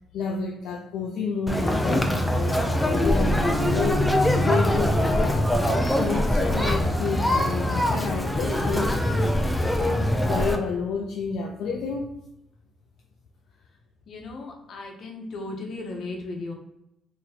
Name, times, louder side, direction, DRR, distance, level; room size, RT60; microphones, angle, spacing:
voice 1, 0.1-4.1 4.4-5.5 6.0-9.4 9.8-12.2, left 5 dB, 80° left, 0 dB, 0.4 m, -30 dB
Conversation, 1.5-10.6, left 1 dB, 10° left, 0.5 m, -23 dB
voice 2, 14.1-16.5, left 2 dB, 60° left, 2 dB, 0.9 m, -36 dB
3.0 x 2.7 x 4.1 m, 0.83 s
cardioid pair, 90°, 0 cm